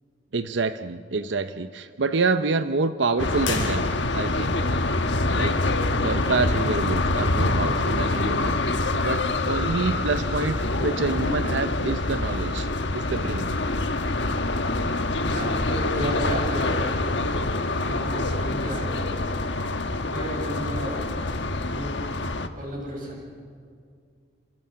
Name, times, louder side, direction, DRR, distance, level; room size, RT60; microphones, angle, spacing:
voice 1, 0.3-4.5 5.3-5.6 6.0-12.7 12.9-13.5, right 3 dB, 70° right, 11 dB, 0.7 m, -27 dB
sound 1, 3.2-22.5, left 2 dB, 65° left, 1.3 m, -25 dB
sound 2, 3.4-4.5, left 5 dB, 90° left, 5.2 m, -34 dB
voice 2, 15.3-18.9 20.1-22.0 22.5-23.2, equal, 45° right, -1 dB, 7.7 m, -34 dB
28.5 x 27.0 x 5.8 m, 2.2 s
head